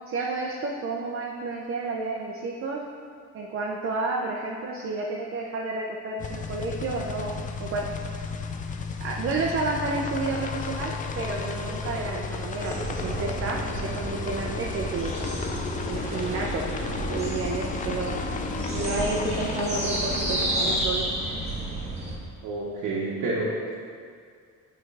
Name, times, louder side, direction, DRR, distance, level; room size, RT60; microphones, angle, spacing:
voice 1, 0.1-2.9 3.3-7.3 7.6-7.9 9.0-15.1 15.9-16.7 17.1-18.2 18.7-21.1, right 3 dB, 45° right, -1 dB, 0.6 m, -31 dB
sound 1, 6.2-20.9, left 5 dB, 25° left, 0.3 m, -33 dB
sound 2, 12.6-22.2, right 1 dB, 20° right, 1.1 m, -31 dB
voice 2, 22.4-23.7, right 2 dB, 90° right, -7 dB, 1.1 m, -29 dB
7.6 x 4.6 x 3.3 m, 2.2 s
cardioid pair, 130°, 30 cm